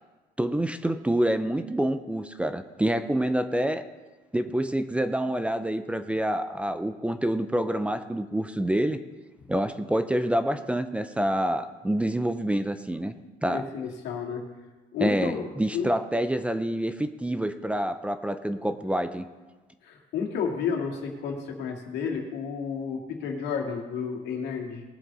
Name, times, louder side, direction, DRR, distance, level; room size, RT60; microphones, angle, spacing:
voice 1, 0.4-3.8 4.3-9.0 9.5-13.1 13.4-13.7 15.0-19.3, right 1 dB, 5° right, 10 dB, 0.6 m, -27 dB
voice 2, 13.4-14.4 14.9-15.9 19.8-24.8, left 6 dB, 85° left, 1 dB, 2.3 m, -31 dB
19.5 x 7.5 x 4.1 m, 1.3 s
cardioid pair, 110°, 17 cm